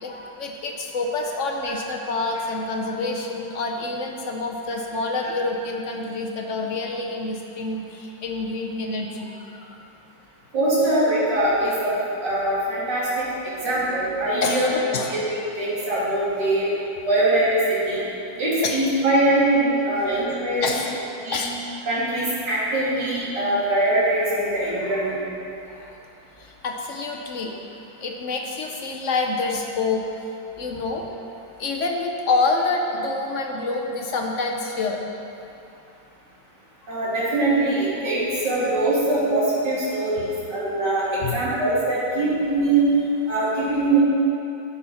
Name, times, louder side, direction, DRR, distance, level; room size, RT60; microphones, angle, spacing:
voice 1, 0.0-9.9 14.4-15.2 18.6-18.8 20.6-21.0 21.3-21.5 24.8-25.1 25.6-26.0 26.4-27.5 28.0-30.1 30.6-31.0 31.6-35.0 41.2-41.4, left 3 dB, 55° left, 2 dB, 0.9 m, -27 dB
voice 2, 10.5-11.9 12.2-14.7 15.1-15.2 15.6-16.7 17.1-18.1 18.4-20.8 21.2-21.4 21.9-25.3 36.9-42.9 43.3-44.0, right 2 dB, 65° right, -9 dB, 3.3 m, -22 dB
9.8 x 6.3 x 5.7 m, 2.8 s
omnidirectional pair, 2.0 m